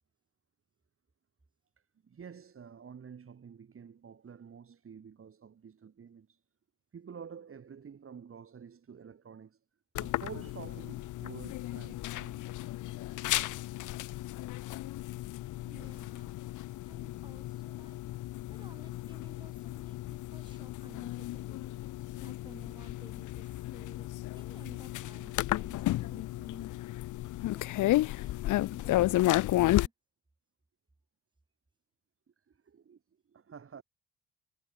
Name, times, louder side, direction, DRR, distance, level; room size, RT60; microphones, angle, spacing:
voice 1, 2.0-6.4 6.9-9.6 10.0-12.4 32.5-33.0 33.3-33.8, right 7 dB, 45° right, 5.9 m, -49 dB
sound 1, 10.0-29.9, left 16 dB, 80° left, 0.8 m, -33 dB
voice 2, 15.6-16.3 16.8-18.0 18.5-21.9 22.2-24.1 24.3-26.7 27.5-29.9, right 2 dB, 15° right, 7.3 m, -56 dB
cardioid pair, 90°, 30 cm